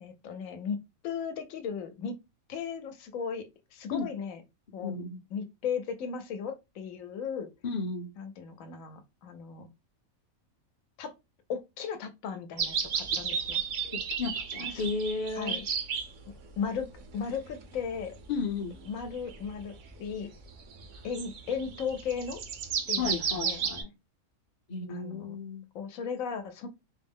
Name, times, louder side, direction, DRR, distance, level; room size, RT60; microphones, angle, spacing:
voice 1, 0.0-2.1 2.5-3.5 3.7-4.4 4.7-4.9 5.3-7.5 8.2-9.7 11.0-11.1 11.5-13.6 14.6-14.9 15.4-15.6 16.6-18.2 18.9-20.3 21.0-22.4 22.9-23.6 24.9-25.4 25.7-26.7, left 6 dB, 70° left, 1.1 m, -36 dB
voice 2, 4.8-5.2 7.6-8.1 13.1-13.2 13.9-15.6 18.3-18.8 23.0-23.9 24.7-25.6, left 4 dB, 40° left, 0.6 m, -33 dB
sound 1, 12.6-16.1 16.7-18.0 18.5-19.5 19.9-20.0 20.7-23.8, right 6 dB, 65° right, 1.0 m, -33 dB
4.4 x 2.0 x 3.5 m
omnidirectional pair, 1.5 m